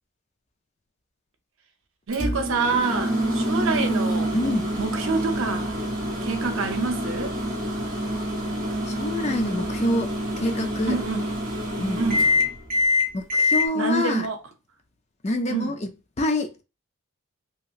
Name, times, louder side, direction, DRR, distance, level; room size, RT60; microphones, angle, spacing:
Microwave oven, 2.1-13.7, left 1 dB, 40° right, 0.8 m, -26 dB
voice 1, 2.1-4.3 4.8-5.8 6.2-7.3 10.9-11.2 12.0-12.3 13.7-14.4 15.5-15.8, right 4 dB, 70° right, 0.7 m, -26 dB
voice 2, 4.3-4.7 8.9-11.0 11.8-12.1 13.1-14.3 15.2-15.9 16.2-16.6, left 1 dB, 30° left, 0.4 m, -26 dB
2.9 x 2.8 x 2.4 m
head